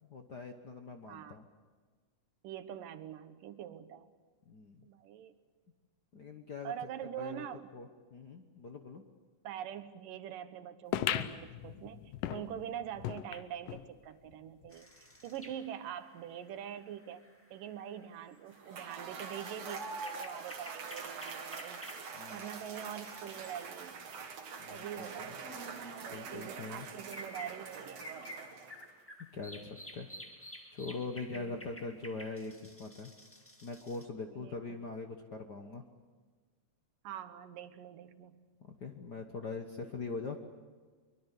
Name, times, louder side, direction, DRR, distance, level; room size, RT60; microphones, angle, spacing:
voice 1, 0.1-1.4 4.5-4.8 6.1-6.7 7.2-7.5 7.7-9.0 22.1-22.5 24.6-25.3 26.1-26.9 29.3-30.1 30.7-33.1 33.6-35.9 38.6-40.4, left 3 dB, 60° left, 4 dB, 1.1 m, -42 dB
voice 2, 1.1-1.4 2.4-4.1 4.8-5.3 6.6-7.7 9.4-14.9 15.2-17.2 17.5-19.9 20.1-21.8 22.3-24.0 24.7-25.7 26.0-28.1 31.3-31.7 34.3-34.6 37.0-38.4, right 10 dB, 85° right, 11 dB, 2.8 m, -44 dB
sound 1, 10.9-13.9 14.3-14.4 14.6-14.7 15.5-15.6, left 12 dB, 80° left, 2.5 m, -37 dB
sound 2, 14.7-24.4 24.8-24.9 25.2-34.0, equal, 10° left, 0.9 m, -52 dB
Cheering / Applause / Crowd, 18.5-29.0, right 5 dB, 55° right, 2.9 m, -44 dB
24.0 x 23.5 x 8.3 m, 1.5 s
omnidirectional pair, 3.8 m